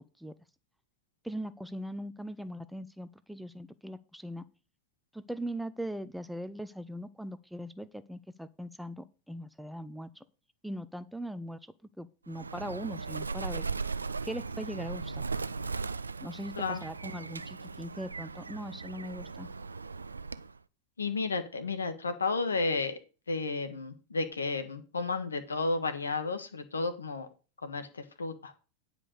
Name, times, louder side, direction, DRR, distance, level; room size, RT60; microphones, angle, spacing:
voice 1, 1.2-4.4 5.1-10.2 10.6-11.6 12.0-13.7 14.2-15.2 16.2-19.5, equal, ahead, 14 dB, 0.6 m, -40 dB
Bird, 12.3-20.6, right 4 dB, 85° right, 0.4 m, -38 dB
voice 2, 21.0-23.0 23.3-27.3 27.6-28.5, left 3 dB, 85° left, 9 dB, 1.4 m, -32 dB
9.8 x 5.2 x 6.5 m, 0.34 s
figure-of-eight pair, 85°, 0 cm